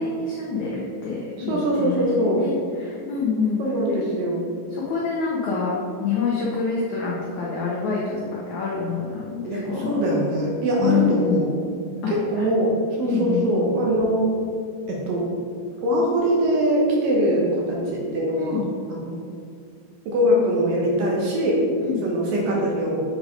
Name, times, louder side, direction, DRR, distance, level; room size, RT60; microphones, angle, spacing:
voice 1, 0.0-3.6 4.7-5.7 6.0-10.0 10.8-11.4 12.0-12.5 13.0-13.4 18.4-18.7 21.8-22.0, left 5 dB, 75° left, -4 dB, 1.7 m, -26 dB
voice 2, 1.5-2.4 3.6-4.4 9.4-11.5 12.1-12.7 13.0-14.3 14.9-15.2 15.8-18.6 18.9-19.2 20.1-21.6 22.0-23.0, equal, 65° right, -3 dB, 2.5 m, -22 dB
7.8 x 5.0 x 5.1 m, 2.3 s
omnidirectional pair, 4.7 m